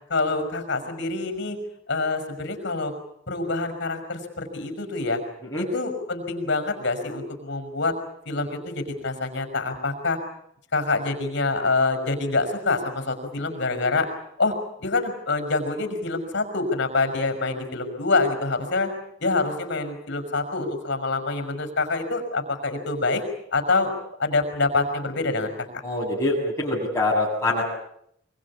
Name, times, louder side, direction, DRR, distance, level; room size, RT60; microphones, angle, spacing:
voice 1, 0.1-1.6 1.9-2.9 3.3-5.2 5.6-7.9 8.3-10.2 10.7-14.1 14.4-14.5 14.8-18.9 19.2-23.2 23.5-23.9 24.2-25.5, left 3 dB, 60° left, 7 dB, 5.9 m, -26 dB
voice 2, 25.8-27.6, left 2 dB, 10° left, -8 dB, 7.7 m, -24 dB
24.5 x 24.0 x 8.7 m, 0.73 s
head